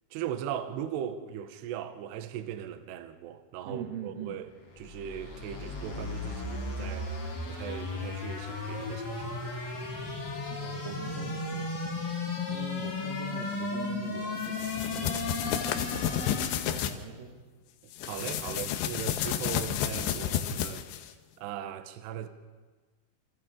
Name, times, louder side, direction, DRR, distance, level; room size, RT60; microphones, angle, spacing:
voice 1, 0.1-4.5 4.8-9.8 18.0-20.9 21.4-22.3, right 10 dB, 70° right, 2.8 m, -39 dB
voice 2, 3.6-4.4 10.5-11.9 12.2-15.6 16.6-17.4, right 6 dB, 55° right, 2.8 m, -42 dB
sound 1, 4.6-16.8, left 3 dB, 35° left, 5.5 m, -35 dB
sound 2, 14.4-16.9 17.9-21.1, left 10 dB, 75° left, 2.8 m, -31 dB
28.5 x 27.0 x 3.7 m
omnidirectional pair, 5.7 m